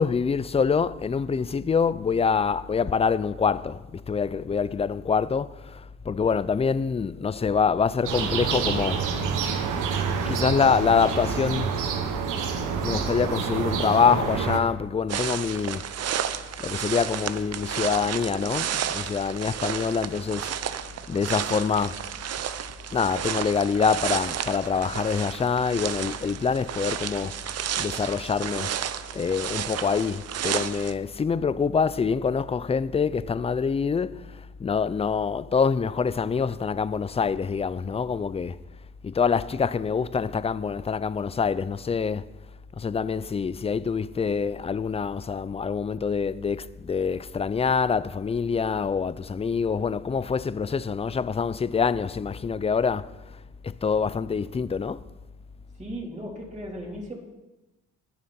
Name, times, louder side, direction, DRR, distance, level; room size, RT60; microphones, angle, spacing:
voice 1, 0.0-9.1 10.3-11.7 12.8-15.9 16.6-20.6 20.8-22.0 22.9-27.4 27.8-28.7 29.1-38.6 39.0-42.3 42.8-55.0, left 5 dB, 20° left, 0.4 m, -25 dB
sound 1, 8.1-14.6, right 6 dB, 90° right, 1.3 m, -27 dB
sound 2, 15.1-30.9, right 9 dB, 55° right, 0.7 m, -32 dB
voice 2, 55.8-57.1, equal, 25° right, 3.7 m, -36 dB
20.0 x 7.0 x 4.3 m
cardioid pair, 90°, 30 cm